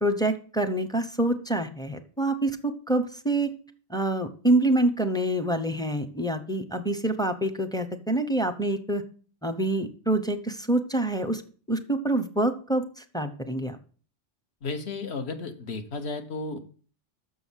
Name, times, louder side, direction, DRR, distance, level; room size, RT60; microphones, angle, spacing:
voice 1, 0.0-3.5 3.9-9.0 9.4-11.4 11.7-13.8, right 1 dB, 5° left, 7 dB, 0.6 m, -26 dB
voice 2, 14.6-16.7, left 3 dB, 60° left, 8 dB, 1.4 m, -33 dB
6.5 x 6.3 x 7.3 m, 0.41 s
omnidirectional pair, 1.2 m